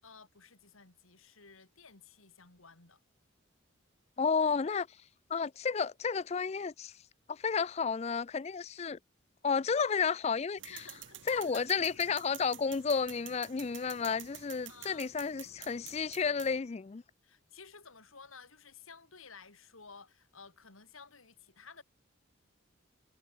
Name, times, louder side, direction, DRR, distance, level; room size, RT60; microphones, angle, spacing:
voice 1, 0.0-3.0 10.7-11.7 14.7-15.1 17.2-21.8, left 5 dB, 85° left, 4.2 m, -54 dB
voice 2, 4.2-4.9 5.3-6.9 7.3-9.0 9.4-10.8 11.3-17.0, left 5 dB, 30° left, 0.3 m, -32 dB
sound 1, 10.6-16.6, right 11 dB, 65° right, 4.7 m, -50 dB
head